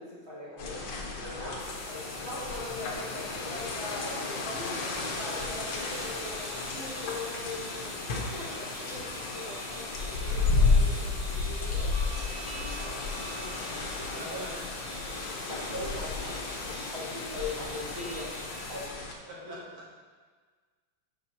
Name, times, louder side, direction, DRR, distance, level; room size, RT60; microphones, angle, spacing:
voice 1, 0.0-4.7 5.1-8.0 8.3-12.3 12.5-13.6 14.0-14.6 15.0-18.9 19.4-19.6, left 2 dB, 15° right, -8 dB, 2.1 m, -41 dB
sound 1, 0.6-19.1, left 3 dB, 75° left, 1.6 m, -33 dB
sound 2, 1.6-18.9, left 2 dB, 55° left, 1.5 m, -44 dB
sound 3, 5.0-18.4, right 2 dB, 45° right, 1.6 m, -49 dB
voice 2, 14.0-14.5 19.2-20.0, equal, 70° right, -5 dB, 1.9 m, -44 dB
11.5 x 5.0 x 2.9 m, 1.4 s
omnidirectional pair, 2.0 m